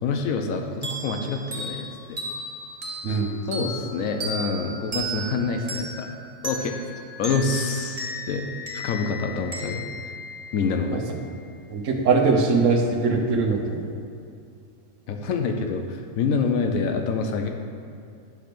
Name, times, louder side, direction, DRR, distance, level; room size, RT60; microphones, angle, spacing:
voice 1, 0.0-2.2 3.1-3.2 3.5-6.1 6.4-6.8 7.2-9.9 10.5-11.0 15.1-17.5, left 4 dB, 85° left, 4 dB, 1.0 m, -27 dB
sound 1, 0.8-11.1, right 1 dB, 30° right, 1.1 m, -35 dB
voice 2, 11.7-13.8, right 4 dB, 70° right, 3 dB, 1.1 m, -21 dB
9.1 x 3.4 x 5.8 m, 2.5 s
omnidirectional pair, 1.4 m